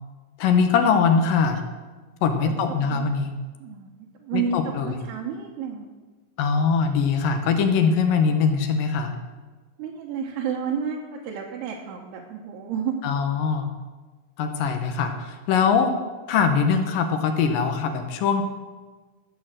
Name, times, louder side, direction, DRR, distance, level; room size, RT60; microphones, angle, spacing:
voice 1, 0.4-1.6 2.2-3.3 4.3-4.9 6.4-9.2 13.0-13.7 14.4-15.9 16.3-18.4, left 5 dB, 70° left, 6 dB, 2.3 m, -22 dB
voice 2, 2.5-3.1 3.6-5.9 9.8-13.0, right 6 dB, 80° right, -2 dB, 3.1 m, -31 dB
13.0 x 7.0 x 7.5 m, 1.3 s
omnidirectional pair, 4.7 m